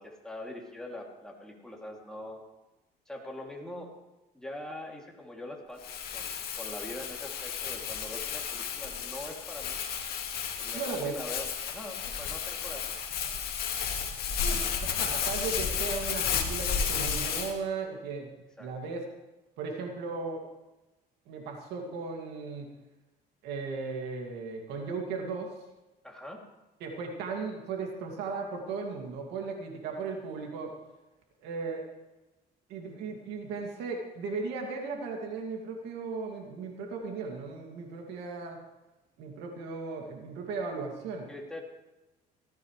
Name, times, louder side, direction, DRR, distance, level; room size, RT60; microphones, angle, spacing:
voice 1, 0.0-2.4 3.1-3.9 4.3-9.8 10.6-12.9 18.6-18.7 26.0-26.4 41.3-41.6, left 1 dB, 5° left, -2 dB, 2.8 m, -43 dB
Crumpling crinkling, 5.8-17.5, left 7 dB, 65° left, 2.0 m, -33 dB
voice 2, 10.7-11.2 14.4-18.3 18.6-19.0 19.6-20.4 21.3-22.7 23.4-25.5 26.8-30.7 31.4-31.9 32.7-38.6 39.2-41.3, right 4 dB, 90° right, 1 dB, 2.4 m, -36 dB
17.5 x 14.0 x 3.3 m, 1.0 s
cardioid pair, 110°, 17 cm